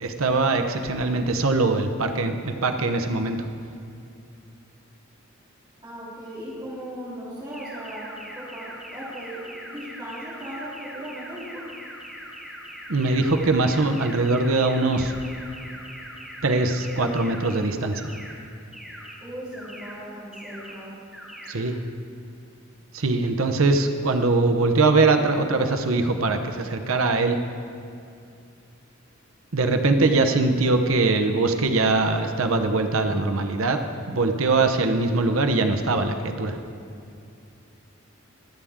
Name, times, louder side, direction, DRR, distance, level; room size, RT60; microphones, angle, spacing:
voice 1, 0.0-3.4 12.9-15.1 16.4-18.2 21.5-21.8 22.9-27.4 29.5-33.8 34.1-36.6, right 3 dB, 90° right, 6 dB, 0.9 m, -22 dB
voice 2, 5.8-8.7 8.9-11.6 19.2-20.9, right 1 dB, 20° right, -9 dB, 3.5 m, -37 dB
sound 1, 7.5-17.5 17.9-18.3 18.7-19.1 19.5-19.9 20.3-20.7 21.1-21.5, equal, 5° right, 2.5 m, -41 dB
24.5 x 8.7 x 3.6 m, 2.5 s
head